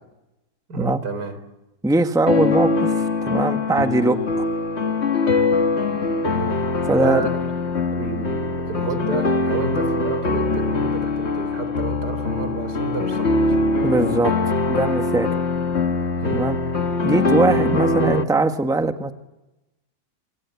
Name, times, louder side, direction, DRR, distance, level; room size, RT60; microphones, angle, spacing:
voice 1, 0.7-1.3 6.2-6.5 6.9-7.5 7.9-13.5 16.2-16.4, right 3 dB, 90° right, 10 dB, 4.5 m, -30 dB
voice 2, 1.8-4.5 6.9-7.3 13.8-14.3 14.7-15.3 16.3-16.6 17.0-19.1, right 2 dB, ahead, 7 dB, 1.3 m, -21 dB
sound 1, 2.3-18.2, left 3 dB, 45° left, 1.8 m, -22 dB
27.5 x 25.0 x 8.4 m, 0.99 s
omnidirectional pair, 1.7 m